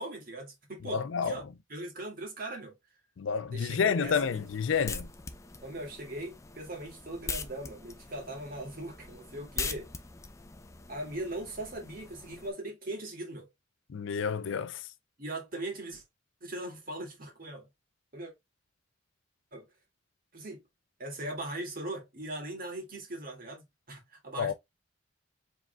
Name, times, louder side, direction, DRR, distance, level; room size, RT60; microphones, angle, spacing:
voice 1, 0.0-1.4 1.7-2.7 3.5-4.4 5.6-9.9 10.9-13.5 15.2-16.0 16.4-17.7 18.1-18.3 19.5-19.7 20.3-20.6 21.0-24.5, right 1 dB, 45° right, 2.1 m, -40 dB
voice 2, 0.9-1.4 3.2-5.1 13.9-14.8 24.4-24.5, left 6 dB, 70° left, 0.4 m, -29 dB
sound 1, 4.0-12.5, left 4 dB, 15° left, 0.5 m, -42 dB
4.9 x 3.7 x 2.2 m
head